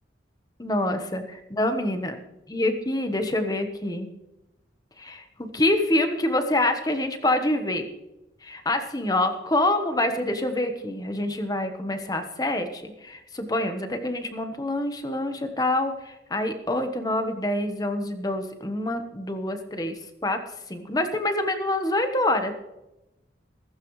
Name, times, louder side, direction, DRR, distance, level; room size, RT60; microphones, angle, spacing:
voice 1, 0.6-1.2 1.5-2.2 2.5-4.1 5.0-7.9 8.4-20.4 20.7-22.5, left 1 dB, 20° left, 7 dB, 1.1 m, -26 dB
15.5 x 15.0 x 3.2 m, 0.94 s
head